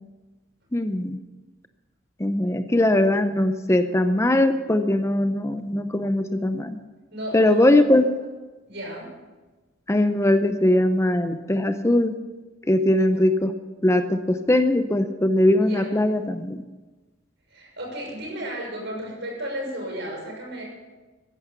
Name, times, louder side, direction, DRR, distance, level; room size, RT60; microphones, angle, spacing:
voice 1, 0.7-1.2 2.2-6.8 7.3-8.0 9.9-12.2 12.6-13.5 13.8-16.6, left 1 dB, 15° left, 9 dB, 0.6 m, -20 dB
voice 2, 7.1-7.7 8.7-9.1 15.6-16.0 17.5-20.6, equal, 60° right, -1 dB, 6.4 m, -33 dB
15.5 x 11.0 x 6.9 m, 1.2 s
head